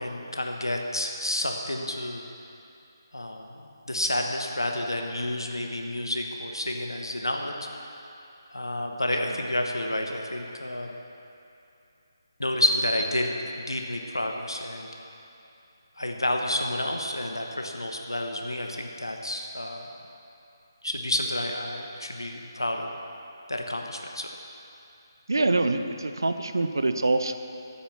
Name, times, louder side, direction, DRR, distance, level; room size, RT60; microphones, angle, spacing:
voice 1, 0.0-2.2 3.1-7.7 8.5-10.9 12.4-14.9 16.0-19.8 20.8-22.9 23.5-24.3, left 1 dB, 80° left, 2 dB, 1.2 m, -30 dB
voice 2, 25.3-27.3, right 2 dB, 65° right, 8 dB, 0.8 m, -25 dB
14.5 x 8.7 x 5.8 m, 2.7 s
figure-of-eight pair, 150°, 2 cm